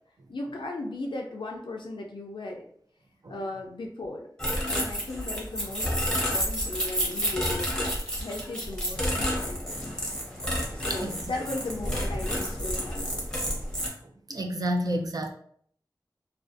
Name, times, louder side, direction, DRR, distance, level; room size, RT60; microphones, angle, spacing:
voice 1, 0.3-2.6 3.3-4.3 4.7-9.8 10.7-13.6, left 2 dB, 80° left, 1 dB, 0.4 m, -37 dB
sound 1, 4.4-13.9, equal, 10° left, 0.7 m, -30 dB
voice 2, 10.7-11.2 14.3-15.3, right 1 dB, 50° right, 4 dB, 0.4 m, -30 dB
2.4 x 2.3 x 2.4 m, 0.62 s
wide cardioid pair, 65°, 8 cm